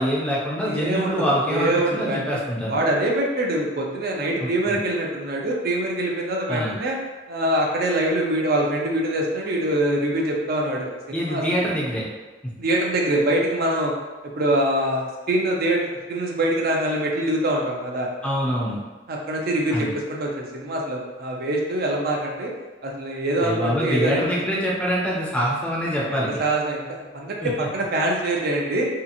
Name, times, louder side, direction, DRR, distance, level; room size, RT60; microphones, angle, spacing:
voice 1, 0.0-2.8 4.4-4.8 6.5-6.8 11.1-12.0 18.2-18.8 19.7-19.9 23.4-26.3 27.4-27.7, equal, 5° left, -4 dB, 0.5 m, -25 dB
voice 2, 0.6-2.4 2.7-7.0 7.3-11.4 12.6-13.9 14.4-18.1 19.1-22.5 22.8-24.4 26.1-28.9, right 1 dB, 55° right, -1 dB, 0.5 m, -24 dB
2.7 x 2.4 x 2.5 m, 1.2 s
head